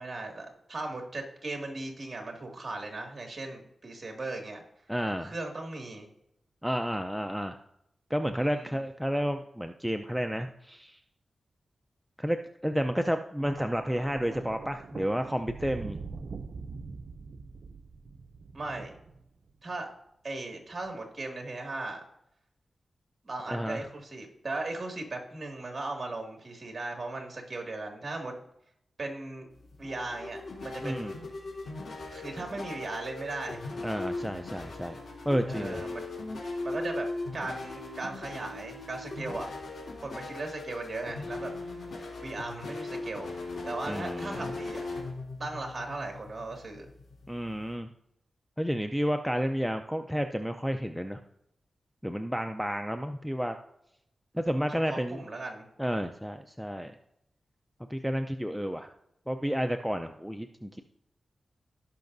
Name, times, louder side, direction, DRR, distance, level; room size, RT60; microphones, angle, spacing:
voice 1, 0.0-4.6 5.2-6.1 8.4-8.8 18.5-18.9 19.6-19.9 20.2-22.0 23.2-28.3 29.0-29.5 29.8-31.2 32.1-33.6 35.5-36.1 36.6-37.1 37.3-39.5 40.0-41.5 42.2-43.3 43.7-44.8 45.4-46.9 54.9-55.7, right 2 dB, 35° right, 2 dB, 2.1 m, -37 dB
voice 2, 4.9-5.3 6.6-7.6 8.1-11.0 12.2-12.4 12.6-16.0 23.5-23.9 30.8-31.1 33.8-35.0 35.3-35.8 43.9-44.5 47.3-47.9 48.6-51.2 52.0-53.5 54.3-55.2 55.8-56.9 57.9-58.9 59.3-60.8, equal, ahead, 5 dB, 0.5 m, -31 dB
Thunder, 13.4-19.7 20.7-21.0, right 4 dB, 65° right, 0.5 m, -43 dB
sound 1, 29.5-47.7, left 2 dB, 90° left, 3.4 m, -39 dB
17.5 x 5.8 x 2.6 m, 0.78 s
wide cardioid pair, 100°, 0 cm